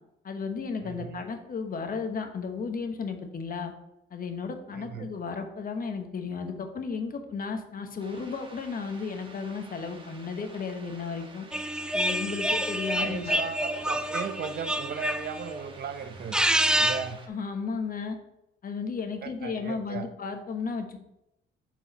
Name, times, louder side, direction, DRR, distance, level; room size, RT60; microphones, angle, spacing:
voice 1, 0.2-3.7 4.1-11.5 11.9-13.4 17.3-18.2 18.6-21.0, left 5 dB, 45° left, 6 dB, 1.1 m, -34 dB
voice 2, 0.8-1.2 4.7-5.1 12.9-16.4 16.8-17.2 19.2-20.1, right 6 dB, 55° right, 9 dB, 0.7 m, -36 dB
sound 1, 8.0-17.3, right 2 dB, 25° right, 1.3 m, -50 dB
sound 2, 11.5-15.6 16.2-17.1, equal, 5° right, 0.3 m, -28 dB
7.7 x 4.8 x 4.1 m, 0.85 s
cardioid pair, 90°, 20 cm